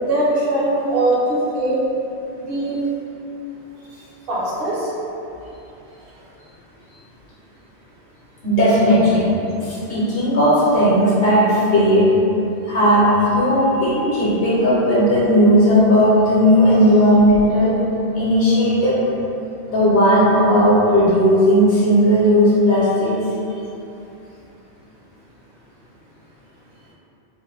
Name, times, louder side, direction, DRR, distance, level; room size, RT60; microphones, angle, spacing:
voice 1, 0.0-1.8 2.3-2.8 4.3-4.9, right 1 dB, 60° right, -6 dB, 0.8 m, -21 dB
voice 2, 8.4-9.3 9.6-12.1 12.7-17.7 18.1-19.0 19.7-23.1, equal, 65° left, -8 dB, 0.9 m, -15 dB
3.1 x 2.1 x 3.1 m, 2.8 s
omnidirectional pair, 1.2 m